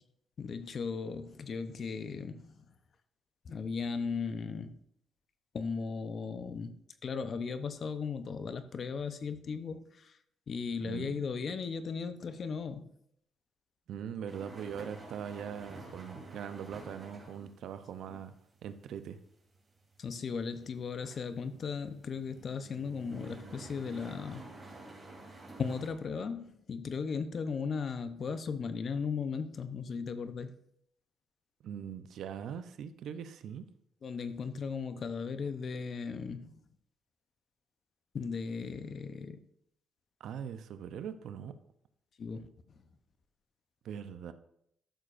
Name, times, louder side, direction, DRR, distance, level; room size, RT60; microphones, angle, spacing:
voice 1, 0.4-2.5 3.4-4.8 5.5-6.7 7.0-10.2 10.5-12.9 20.0-24.5 25.6-30.5 34.0-36.6 38.1-39.4 42.2-42.5, left 5 dB, 50° left, 0.7 m, -37 dB
voice 2, 10.8-11.2 13.9-18.3 18.6-19.2 31.6-33.6 40.2-41.5 43.8-44.3, right 8 dB, 75° right, 0.6 m, -41 dB
sound 1, 14.3-25.9, right 2 dB, 25° right, 3.3 m, -50 dB
12.5 x 6.7 x 2.6 m
cardioid pair, 90°, 0 cm